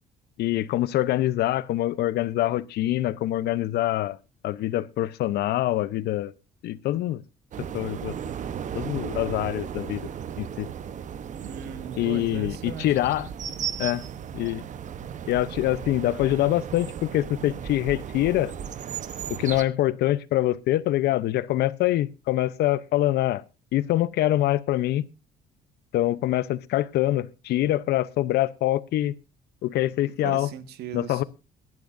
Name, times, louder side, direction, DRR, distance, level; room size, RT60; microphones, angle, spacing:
voice 1, 0.4-4.2 4.4-6.3 6.6-7.2 7.6-8.1 8.7-10.1 10.4-10.7 12.0-13.3 13.8-14.0 14.3-14.6 15.3-18.5 19.3-23.4 23.7-25.0 25.9-29.1 29.6-30.5 30.9-31.2, left 14 dB, 75° left, 0.7 m, -25 dB
sound 1, 7.5-19.6, right 8 dB, 45° right, 0.9 m, -35 dB
voice 2, 11.4-12.9 30.2-31.2, right 9 dB, 75° right, 1.6 m, -37 dB
22.5 x 11.0 x 2.6 m
cardioid pair, 110°, 17 cm